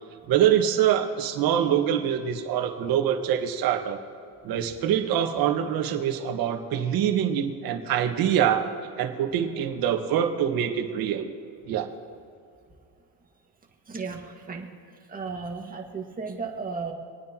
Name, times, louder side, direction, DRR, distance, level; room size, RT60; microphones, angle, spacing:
voice 1, 0.3-4.0 4.4-8.7 9.0-11.3 11.7-11.9, right 9 dB, 50° right, 4 dB, 1.6 m, -24 dB
voice 2, 13.9-14.7 15.1-16.9, right 4 dB, 20° right, 1 dB, 1.9 m, -34 dB
27.0 x 9.4 x 3.0 m, 2.4 s
supercardioid pair, 120°, 47 cm